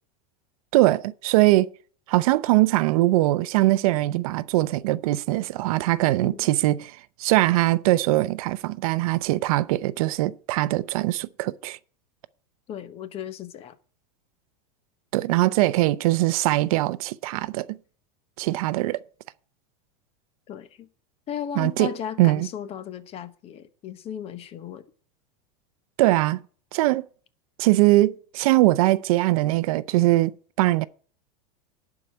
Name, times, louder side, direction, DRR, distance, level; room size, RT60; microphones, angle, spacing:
voice 1, 0.7-1.7 2.1-11.8 15.1-17.8 18.4-19.0 21.6-21.9 22.2-22.5 26.0-26.4 26.7-27.1 27.6-30.8, right 17 dB, 65° right, 0.6 m, -21 dB
voice 2, 12.7-13.8 20.5-20.9 21.3-24.8, left 9 dB, 30° left, 0.9 m, -36 dB
11.5 x 4.8 x 7.7 m
supercardioid pair, 145°, 19 cm